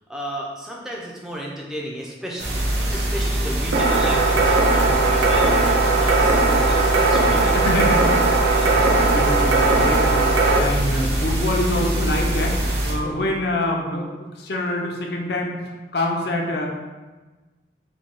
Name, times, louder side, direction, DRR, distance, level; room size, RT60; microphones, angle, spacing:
voice 1, 0.1-2.6 2.9-5.6 6.0-7.9 8.4-8.7, equal, 5° right, -3 dB, 0.5 m, -33 dB
sound 1, 2.4-12.9, right 1 dB, 65° right, 1.0 m, -23 dB
sound 2, 3.7-10.6, right 3 dB, 85° right, 0.6 m, -19 dB
voice 2, 7.5-10.2 10.5-16.7, left 1 dB, 60° left, 0 dB, 0.6 m, -26 dB
4.2 x 2.2 x 4.6 m, 1.2 s
head